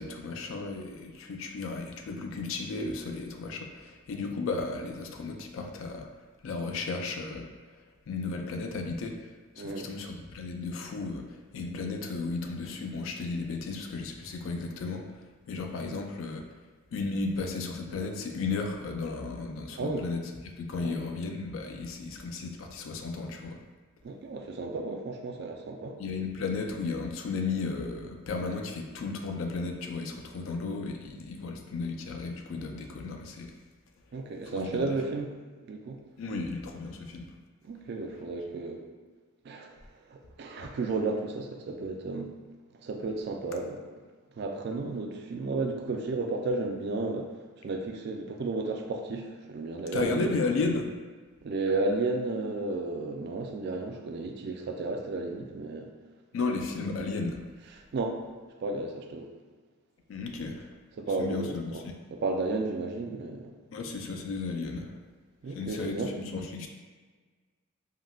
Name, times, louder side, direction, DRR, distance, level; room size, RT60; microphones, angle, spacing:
voice 1, 0.0-6.1 6.4-7.5 8.1-9.2 9.6-15.0 15.5-16.5 16.9-23.6 26.0-33.5 34.5-35.0 36.2-37.3 40.6-40.7 49.9-50.9 56.3-57.4 60.1-60.7 61.2-61.9 63.7-64.9 65.5-66.7, left 3 dB, 75° left, 3 dB, 0.3 m, -34 dB
voice 2, 9.6-9.9 19.8-20.1 20.8-20.9 24.0-26.0 34.1-35.3 35.7-36.0 37.6-38.8 39.4-39.7 40.1-42.3 42.8-43.9 44.4-47.3 47.6-50.3 51.4-55.9 57.9-58.2 58.6-59.3 61.0-61.8 62.1-63.5 65.4-66.1, right 3 dB, 55° right, 3 dB, 0.3 m, -33 dB
3.6 x 2.1 x 2.3 m, 1.4 s
head